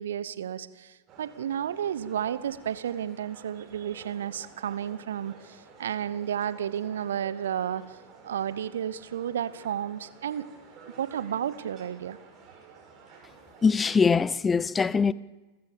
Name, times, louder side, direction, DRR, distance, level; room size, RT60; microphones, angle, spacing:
voice 1, 0.0-7.8 8.2-10.4 11.0-12.2, right 9 dB, 65° right, 1.0 m, -32 dB
sound 1, 1.1-13.7, right 5 dB, 30° right, 5.7 m, -52 dB
voice 2, 13.6-15.1, left 5 dB, 15° left, 0.5 m, -22 dB
29.0 x 14.0 x 7.1 m
figure-of-eight pair, 90°, 0 cm